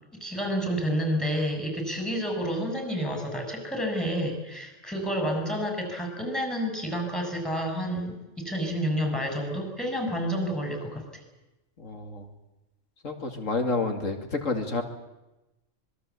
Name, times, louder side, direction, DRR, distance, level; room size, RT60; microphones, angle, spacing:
voice 1, 0.2-11.0, equal, ahead, 5 dB, 6.5 m, -29 dB
voice 2, 11.8-12.3 13.0-14.8, left 3 dB, 85° left, 4 dB, 2.8 m, -29 dB
25.5 x 22.0 x 8.3 m, 0.98 s
omnidirectional pair, 1.3 m